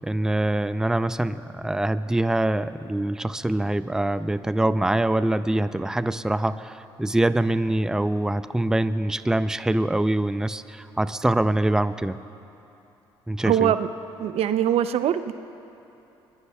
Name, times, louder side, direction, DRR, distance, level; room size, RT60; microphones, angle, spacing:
voice 1, 0.0-12.2 13.3-13.7, right 1 dB, 5° right, 12 dB, 0.5 m, -24 dB
voice 2, 13.5-13.9 14.2-15.3, right 10 dB, 65° right, 11 dB, 0.6 m, -22 dB
24.0 x 20.5 x 2.3 m, 2.9 s
supercardioid pair, 60°, 11 cm